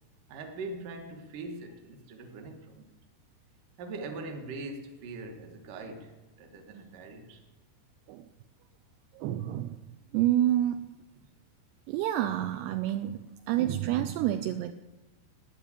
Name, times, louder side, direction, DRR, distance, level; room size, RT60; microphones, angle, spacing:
voice 1, 0.3-2.9 3.8-7.4, right 3 dB, 60° right, 2.6 m, -42 dB
voice 2, 9.1-9.8 10.1-11.0 11.9-14.7, right 12 dB, 80° right, 2.6 m, -28 dB
12.5 x 9.9 x 8.5 m
omnidirectional pair, 4.9 m